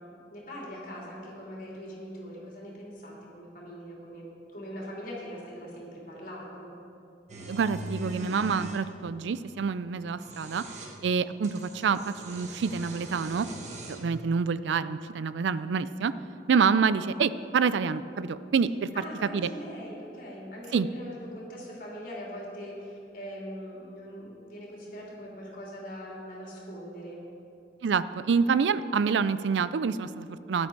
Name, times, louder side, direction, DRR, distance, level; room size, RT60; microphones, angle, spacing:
voice 1, 0.0-4.3 4.5-6.7 18.9-27.2, equal, 50° left, -3 dB, 3.0 m, -41 dB
sound 1, 7.3-8.9 10.0-11.0 11.4-14.1, right 2 dB, 40° right, 1.2 m, -41 dB
voice 2, 7.5-10.6 11.0-13.5 13.9-16.1 16.5-18.9 19.3-19.5 20.7-20.9 27.8-30.7, right 5 dB, 80° right, 15 dB, 0.4 m, -27 dB
13.5 x 9.9 x 4.6 m, 2.9 s
head